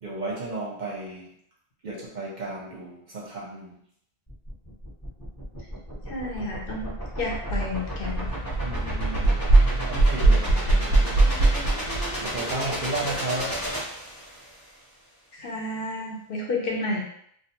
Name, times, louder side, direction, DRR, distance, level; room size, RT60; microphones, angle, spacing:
voice 1, 0.0-1.3 1.8-3.8 8.6-11.1 12.2-13.6, right 2 dB, 55° right, -3 dB, 0.6 m, -34 dB
sound 1, 4.3-14.6, equal, 20° left, 0.8 m, -33 dB
voice 2, 6.1-8.3 15.3-17.0, left 2 dB, 65° left, -2 dB, 0.8 m, -31 dB
sound 2, 7.5-7.6 7.9-12.1, right 2 dB, 90° right, 0.9 m, -20 dB
2.3 x 2.3 x 2.8 m, 0.68 s
omnidirectional pair, 1.1 m